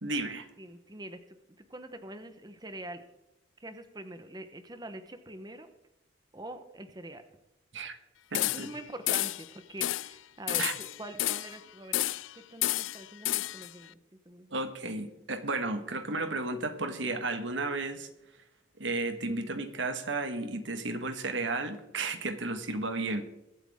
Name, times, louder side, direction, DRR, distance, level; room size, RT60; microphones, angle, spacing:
voice 1, 0.0-0.5 7.7-8.0 8.3-8.7 10.6-10.7 14.5-18.1 18.8-23.2, right 2 dB, 70° right, 8 dB, 1.6 m, -33 dB
voice 2, 0.6-3.0 3.6-5.7 6.3-7.2 8.4-12.0 12.3-14.0 14.2-14.6, right 1 dB, 20° right, 8 dB, 1.1 m, -44 dB
sound 1, 8.3-8.8 9.1-9.5 9.8-10.1 10.5-11.6 11.9-12.3 12.6-13.7, left 15 dB, 80° left, 0.4 m, -30 dB
22.5 x 8.3 x 3.7 m, 0.92 s
head